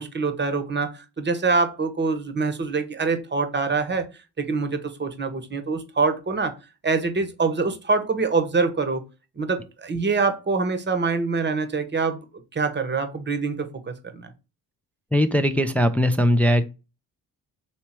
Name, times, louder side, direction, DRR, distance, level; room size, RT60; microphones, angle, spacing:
voice 1, 0.0-4.1 4.4-6.5 6.8-9.0 9.4-12.2 12.5-14.3, right 4 dB, 25° right, 8 dB, 0.9 m, -25 dB
voice 2, 15.1-16.6, equal, 5° left, 8 dB, 0.3 m, -20 dB
3.2 x 3.1 x 4.3 m, 0.30 s
hypercardioid pair, 45°, 46 cm